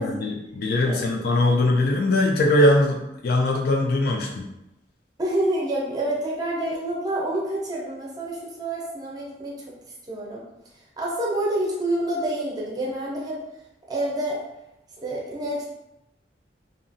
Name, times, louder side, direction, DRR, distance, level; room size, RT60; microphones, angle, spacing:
voice 1, 0.0-4.3, left 1 dB, 55° left, 0 dB, 0.3 m, -21 dB
voice 2, 5.2-9.6 10.1-10.4 11.0-13.4 13.9-14.4 15.0-15.7, right 1 dB, 20° right, -4 dB, 0.6 m, -27 dB
2.7 x 2.4 x 2.6 m, 0.88 s
head